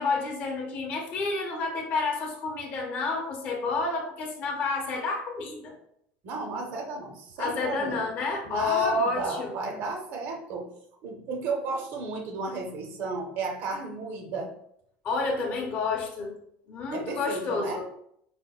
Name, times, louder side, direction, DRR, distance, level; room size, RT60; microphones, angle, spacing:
voice 1, 0.0-5.7 7.4-9.5 15.0-16.4 16.7-18.0, left 3 dB, 35° left, 0 dB, 0.7 m, -29 dB
voice 2, 6.2-8.1 8.4-10.7 11.0-14.5 16.9-17.8, right 3 dB, 45° right, 3 dB, 0.6 m, -33 dB
5.1 x 2.1 x 2.3 m, 0.72 s
cardioid pair, 170°, 5 cm